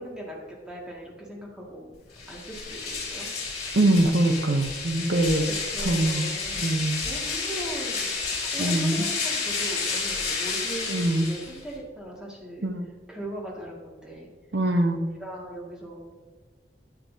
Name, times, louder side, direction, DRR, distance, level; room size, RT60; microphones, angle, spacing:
voice 1, 0.0-1.9 2.3-3.3 5.7-12.7 13.1-14.3 15.2-16.1, right 1 dB, 5° right, -4 dB, 2.0 m, -39 dB
sound 1, 2.1-11.8, left 4 dB, 40° left, 2.8 m, -31 dB
voice 2, 3.7-5.4 5.8-6.3 6.6-7.0 8.6-9.1 10.9-11.3 12.6-12.8 14.5-15.1, right 1 dB, 70° right, 5 dB, 0.8 m, -23 dB
10.0 x 9.4 x 2.8 m, 1.5 s
head